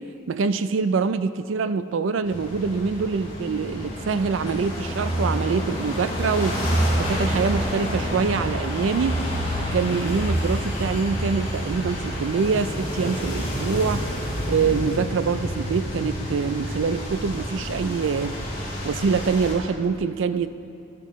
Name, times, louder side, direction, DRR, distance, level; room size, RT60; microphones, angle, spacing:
voice 1, 0.3-6.6 7.0-9.2 9.7-14.0 14.5-18.4 18.8-20.5, right 5 dB, 80° right, 12 dB, 0.4 m, -25 dB
sound 1, 2.2-19.5, equal, 30° left, 2.6 m, -28 dB
12.0 x 10.5 x 3.1 m, 2.6 s
head